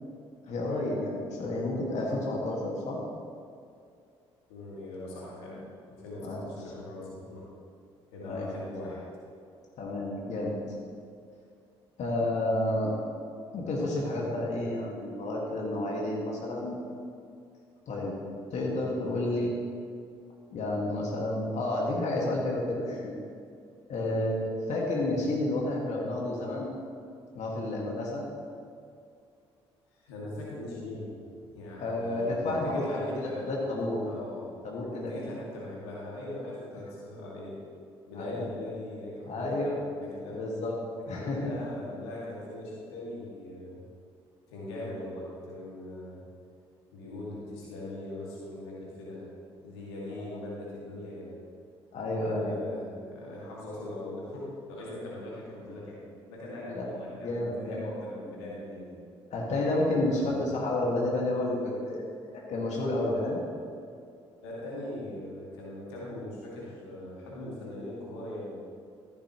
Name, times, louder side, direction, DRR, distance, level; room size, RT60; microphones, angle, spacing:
voice 1, 0.4-3.0 6.2-6.4 8.2-8.5 9.8-10.6 12.0-12.9 13.5-16.8 17.9-18.1 18.5-19.5 20.5-23.1 23.9-24.4 24.7-26.7 27.4-28.2 31.8-34.0 34.6-35.3 38.1-38.5 39.3-39.8 40.3-40.8 41.1-41.5 50.1-50.4 51.9-52.6 56.7-56.9 57.2-57.9 59.3-62.0 62.3-63.4, left 1 dB, 60° left, -3 dB, 1.8 m, -30 dB
voice 2, 4.5-5.6 5.9-7.5 8.1-9.0 24.0-24.2 29.9-31.0 31.3-33.4 34.0-37.5 38.1-40.4 41.1-43.8 44.5-46.2 46.9-49.2 49.6-51.3 52.2-56.0 56.3-59.0 60.0-60.4 63.1-63.3 64.4-68.5, left 1 dB, 85° left, -5 dB, 2.1 m, -40 dB
14.5 x 6.7 x 3.0 m, 2.4 s
hypercardioid pair, 50°, 14 cm